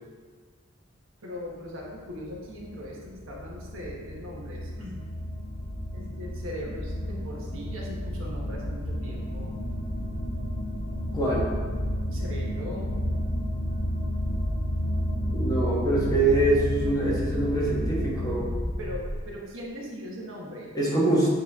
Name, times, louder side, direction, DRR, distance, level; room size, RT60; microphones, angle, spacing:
voice 1, 1.2-5.0 5.9-9.5 12.1-12.9 18.8-20.8 21.1-21.3, left 1 dB, 70° right, -3 dB, 1.2 m, -39 dB
sound 1, 1.7-19.2, equal, 65° left, 1.1 m, -31 dB
voice 2, 11.1-11.5 15.3-18.5 20.7-21.3, right 2 dB, 20° left, -6 dB, 1.4 m, -24 dB
8.6 x 3.2 x 3.6 m, 1.5 s
head